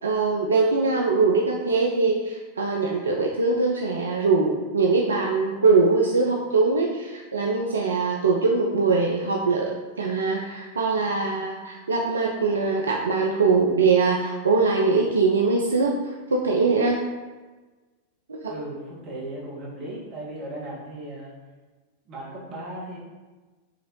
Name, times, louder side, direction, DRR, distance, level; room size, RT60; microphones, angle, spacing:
voice 1, 0.0-17.0 18.3-18.5, right 4 dB, 70° right, 0 dB, 0.3 m, -22 dB
voice 2, 18.5-21.3 22.0-23.0, right 1 dB, 35° right, -5 dB, 1.4 m, -36 dB
4.8 x 2.9 x 3.0 m, 1.3 s
figure-of-eight pair, 90°, 0 cm